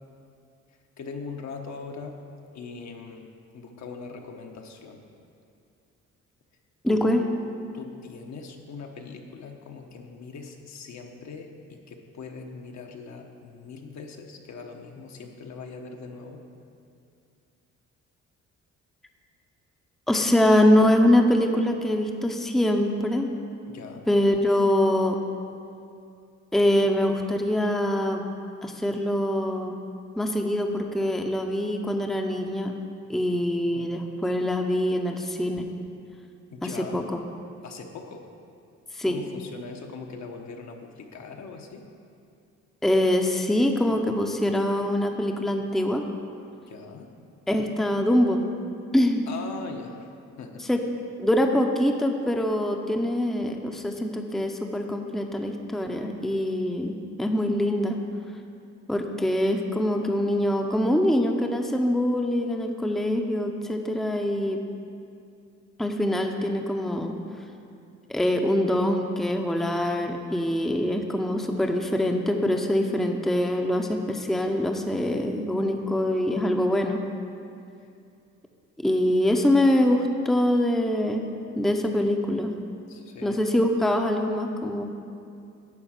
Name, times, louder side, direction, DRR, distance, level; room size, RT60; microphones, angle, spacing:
voice 1, 1.0-2.2 2.5-3.3 3.5-5.0 6.9-7.2 7.7-16.4 23.7-24.1 33.7-33.9 36.5-37.1 37.6-38.2 39.0-41.8 46.7-47.1 49.3-50.1 50.4-50.6 82.9-83.4, left 4 dB, 65° left, 3 dB, 1.0 m, -40 dB
voice 2, 6.8-7.2 20.1-23.3 24.1-25.2 26.5-28.2 28.6-29.8 30.2-32.7 33.1-35.7 36.6-37.2 38.9-39.1 42.8-46.1 47.5-48.4 48.9-49.3 50.7-50.8 51.2-58.0 58.9-64.6 65.8-67.2 68.1-77.0 78.8-81.3 81.5-82.5 83.2-84.8, left 1 dB, ahead, 3 dB, 0.6 m, -24 dB
10.5 x 3.9 x 7.4 m, 2.5 s
cardioid pair, 90°, 30 cm